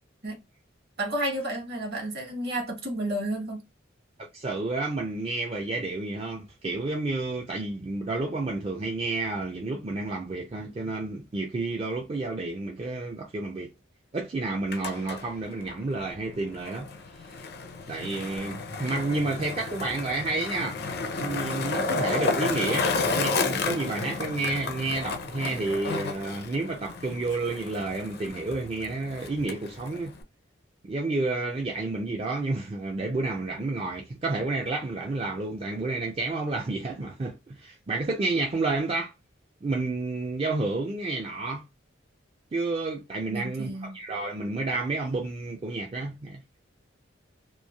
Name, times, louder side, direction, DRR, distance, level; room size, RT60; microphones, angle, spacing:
voice 1, 1.0-3.6 43.3-44.0, right 1 dB, 55° right, 1.1 m, -31 dB
voice 2, 4.2-13.7 14.1-16.9 17.9-20.8 21.2-30.1 30.9-39.1 39.6-41.6 42.5-46.4, right 3 dB, 30° right, 0.4 m, -30 dB
Skateboard, 14.5-30.2, left 4 dB, 55° left, 0.5 m, -32 dB
3.0 x 2.4 x 2.2 m
head